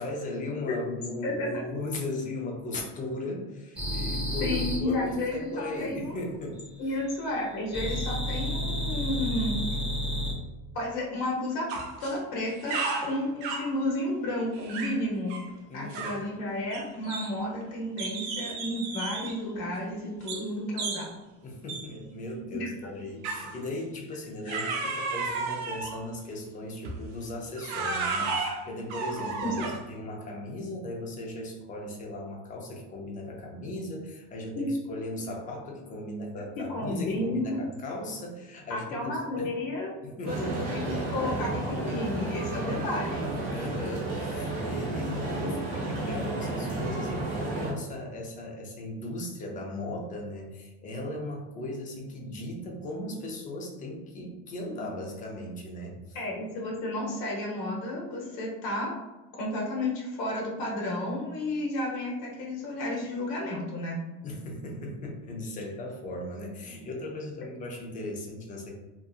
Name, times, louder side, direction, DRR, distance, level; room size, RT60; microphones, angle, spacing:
voice 1, 0.0-6.9 15.7-16.2 21.4-39.5 40.0-40.6 43.5-56.2 64.2-68.7, left 1 dB, 25° left, 0 dB, 0.5 m, -37 dB
voice 2, 1.2-1.6 4.4-6.1 6.8-9.6 10.7-11.6 12.0-15.4 15.7-21.1 22.5-22.7 29.4-29.5 34.5-34.7 36.6-37.6 38.7-39.9 40.2-43.3 56.1-58.9 59.4-64.0, left 1 dB, 60° left, -3 dB, 0.9 m, -32 dB
sound 1, 3.8-4.8 7.7-10.3, equal, 5° right, 0.8 m, -30 dB
sound 2, 11.7-12.2 12.5-13.7 14.6-15.0 15.3-15.5 15.9-16.3 16.7-17.6 18.0-19.4 20.3-20.5 20.8-21.1 21.7-21.9 23.2-23.6 24.5-26.0 26.8-27.1 27.6-29.9, right 4 dB, 85° right, 0.5 m, -33 dB
sound 3, 40.3-47.7, right 2 dB, 40° right, 0.9 m, -32 dB
2.7 x 2.4 x 2.3 m, 1.1 s
cardioid pair, 145°, 31 cm